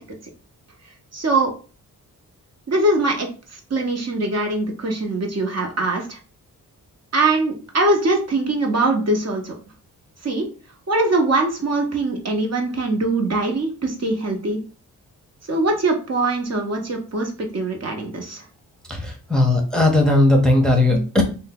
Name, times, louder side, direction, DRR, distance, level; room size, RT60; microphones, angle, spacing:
voice 1, 1.1-1.5 2.7-6.2 7.1-9.5 10.2-10.5 10.9-14.6 15.5-18.4 20.9-21.0, right 2 dB, 45° right, 2 dB, 0.8 m, -22 dB
voice 2, 18.9-21.2, left 2 dB, ahead, 1 dB, 0.7 m, -17 dB
2.6 x 2.1 x 4.0 m, 0.36 s
cardioid pair, 65°, 36 cm